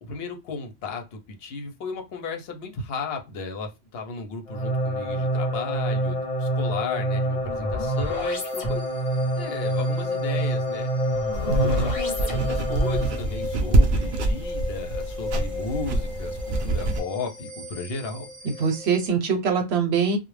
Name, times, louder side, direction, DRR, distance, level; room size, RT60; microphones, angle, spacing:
voice 1, 0.0-8.8 9.4-10.9 11.4-18.3, left 4 dB, 75° left, 0.9 m, -35 dB
sound 1, 4.5-13.3, right 1 dB, 35° left, 0.7 m, -27 dB
sound 2, 7.8-19.1, left 3 dB, 5° right, 1.2 m, -36 dB
sound 3, 11.3-17.0, right 1 dB, 65° right, 0.7 m, -25 dB
voice 2, 11.5-11.9 18.6-20.2, right 5 dB, 90° right, 0.9 m, -23 dB
2.3 x 2.0 x 3.2 m
omnidirectional pair, 1.0 m